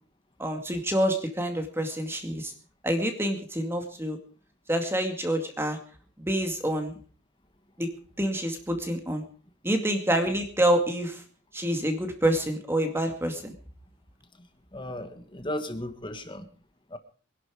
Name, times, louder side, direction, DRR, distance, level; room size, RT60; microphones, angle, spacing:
voice 1, 0.4-2.5 2.8-4.2 4.7-5.8 6.2-7.0 7.8-7.9 8.2-9.2 9.6-11.2 11.5-13.5, right 1 dB, 10° right, 5 dB, 2.2 m, -27 dB
voice 2, 14.7-16.5 16.9-17.0, left 1 dB, 20° left, 9 dB, 1.5 m, -35 dB
24.0 x 11.5 x 5.0 m, 0.42 s
head